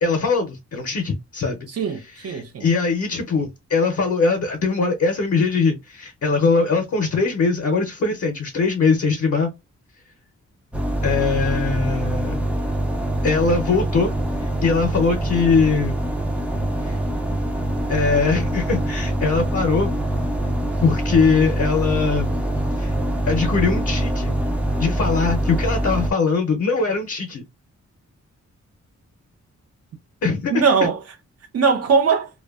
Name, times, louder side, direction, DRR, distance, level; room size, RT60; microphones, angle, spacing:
voice 1, 0.0-1.7 2.2-9.5 11.0-12.4 13.2-14.1 14.4-16.0 16.8-17.0 17.9-19.9 20.8-22.4 22.8-22.9 23.3-24.3 24.8-27.4 30.2-30.6, left 4 dB, 55° left, 0.5 m, -21 dB
voice 2, 1.7-2.7 30.5-31.0 31.5-32.3, right 5 dB, 60° right, 0.5 m, -20 dB
sound 1, 10.7-26.1, right 1 dB, 5° right, 0.3 m, -24 dB
2.5 x 2.1 x 2.3 m
wide cardioid pair, 155°, 29 cm